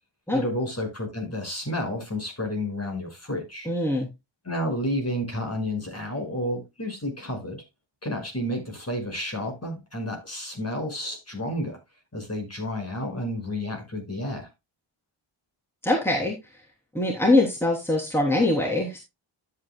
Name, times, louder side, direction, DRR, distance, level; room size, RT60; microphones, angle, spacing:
voice 1, 0.3-3.7 4.4-7.6 8.0-11.8 12.1-14.5, left 1 dB, 30° left, 5.7 m, -31 dB
voice 2, 3.7-4.1 15.8-16.4 16.9-19.0, left 2 dB, 5° left, 3.3 m, -23 dB
13.0 x 8.6 x 2.2 m
wide cardioid pair, 90°, 50 cm